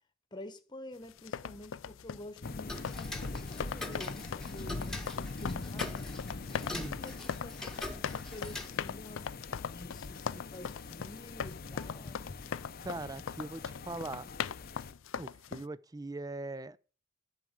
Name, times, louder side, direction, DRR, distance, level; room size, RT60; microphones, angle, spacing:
voice 1, 0.3-6.1 6.5-9.3 9.7-12.2, left 1 dB, 20° left, 1.2 m, -49 dB
sound 1, 1.1-15.6, left 7 dB, 85° left, 0.4 m, -40 dB
sound 2, 2.4-14.9, left 3 dB, 50° left, 0.7 m, -43 dB
Tick-tock, 2.7-8.7, left 1 dB, 5° left, 1.3 m, -43 dB
voice 2, 12.8-14.3 15.2-16.8, right 2 dB, 20° right, 0.5 m, -41 dB
11.0 x 6.1 x 8.2 m
head